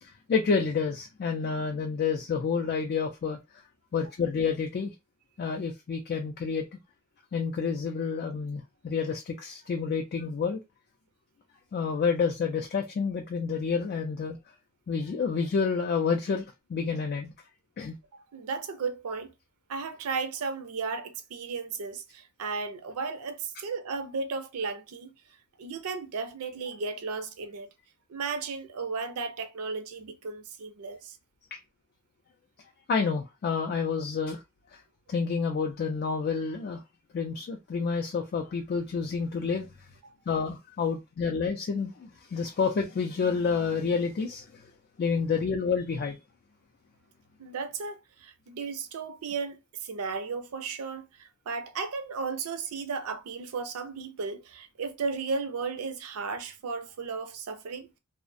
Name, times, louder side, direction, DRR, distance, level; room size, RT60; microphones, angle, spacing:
voice 1, 0.0-3.4 3.9-4.9 5.4-6.6 7.3-10.6 11.7-14.4 14.9-16.4 16.7-17.3 17.8-17.9 31.5-31.6 32.9-34.4 34.7-34.8 35.1-36.8 37.1-39.7 40.3-44.6 45.0-46.2, left 5 dB, 45° left, 0.3 m, -29 dB
voice 2, 18.1-19.3 19.7-25.1 25.6-27.7 28.1-31.2 40.0-40.1 47.4-57.9, right 4 dB, 75° right, 0.5 m, -35 dB
2.4 x 2.0 x 2.5 m
head